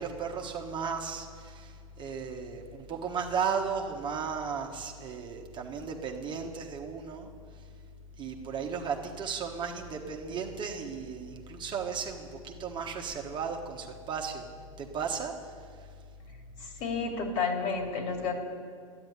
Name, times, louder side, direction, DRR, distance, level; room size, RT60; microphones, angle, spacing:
voice 1, 0.0-7.3 8.2-14.5 14.8-15.9, right 6 dB, 25° right, 2 dB, 1.4 m, -35 dB
voice 2, 16.8-18.3, left 5 dB, 50° left, 3 dB, 3.0 m, -30 dB
11.5 x 9.7 x 9.7 m, 2.1 s
hypercardioid pair, 105°, 18 cm